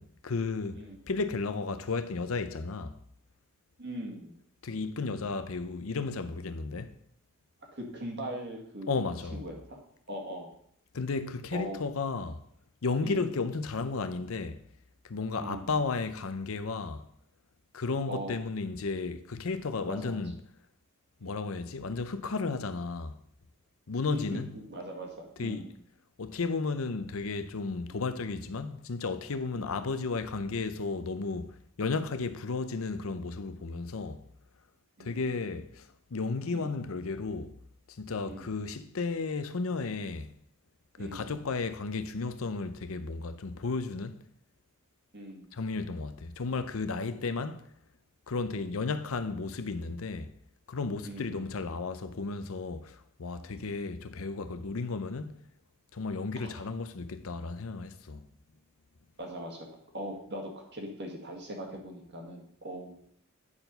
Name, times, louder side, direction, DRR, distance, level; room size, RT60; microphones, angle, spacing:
voice 1, 0.0-3.0 4.6-6.9 8.9-9.4 10.9-12.4 12.8-14.6 15.0-17.1 17.7-20.3 21.2-23.2 23.9-24.6 25.4-25.7 26.2-31.5 31.8-34.2 35.0-37.6 37.9-40.3 41.0-44.2 45.5-47.6 48.3-50.3 50.7-55.4 55.9-58.2, left 4 dB, 70° left, 0.6 m, -33 dB
voice 2, 3.8-4.4 7.7-9.8 10.1-10.5 11.5-11.8 13.0-13.3 15.4-15.7 18.1-18.4 19.9-20.2 21.2-21.4 24.1-24.2 24.5-25.7 29.5-29.7 35.0-35.3 36.5-36.8 38.3-38.5 41.0-41.4 45.1-45.5 51.0-51.4 56.4-56.7 59.2-59.7 59.9-63.0, right 1 dB, 50° right, 1.9 m, -41 dB
9.7 x 4.6 x 5.5 m
head